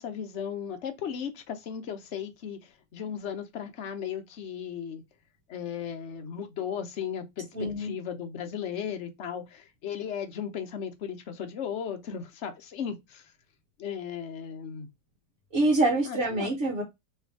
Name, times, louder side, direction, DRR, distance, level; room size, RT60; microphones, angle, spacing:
voice 1, 0.0-5.0 5.5-7.5 7.8-13.3 13.8-14.9 16.0-16.5, left 8 dB, 50° left, 0.9 m, -36 dB
voice 2, 7.5-7.9 15.5-16.8, right 2 dB, 50° right, 1.5 m, -25 dB
3.3 x 3.3 x 4.5 m
omnidirectional pair, 1.9 m